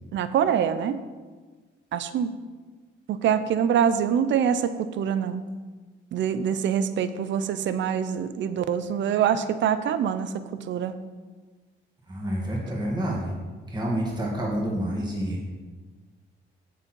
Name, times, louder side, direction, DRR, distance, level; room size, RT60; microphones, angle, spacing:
voice 1, 0.1-1.0 1.9-2.3 3.1-5.4 6.1-10.3 10.7-10.9, right 8 dB, 70° right, 12 dB, 0.6 m, -25 dB
voice 2, 12.1-13.4 13.7-15.5, right 1 dB, 20° right, -3 dB, 2.3 m, -28 dB
9.2 x 8.2 x 4.6 m, 1.4 s
cardioid pair, 90°, 20 cm